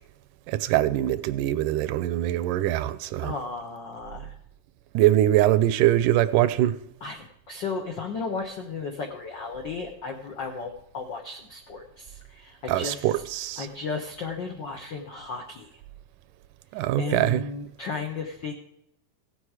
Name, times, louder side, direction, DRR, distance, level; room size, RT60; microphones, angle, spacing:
voice 1, 0.5-3.3 4.9-6.8 12.7-13.7 16.7-17.4, right 13 dB, 85° right, 2.1 m, -23 dB
voice 2, 3.2-4.3 7.0-13.1 13.6-15.7 17.0-18.5, left 4 dB, 85° left, 1.0 m, -34 dB
16.5 x 7.8 x 4.8 m
omnidirectional pair, 3.7 m